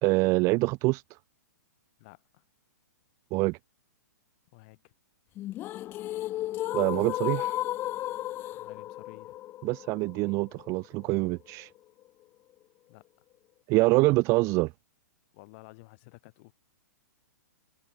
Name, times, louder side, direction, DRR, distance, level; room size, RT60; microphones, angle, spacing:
voice 1, 0.0-1.0 3.3-3.6 6.7-7.6 9.6-11.7 13.7-14.7, right 24 dB, 30° right, 0.7 m, -25 dB
voice 2, 2.0-2.4 4.5-4.9 8.5-9.4 12.9-13.1 15.3-16.5, left 26 dB, 40° left, 3.9 m, -53 dB
sound 1, 5.4-11.4, left 14 dB, 20° left, 0.4 m, -34 dB
figure-of-eight pair, 115°, 10 cm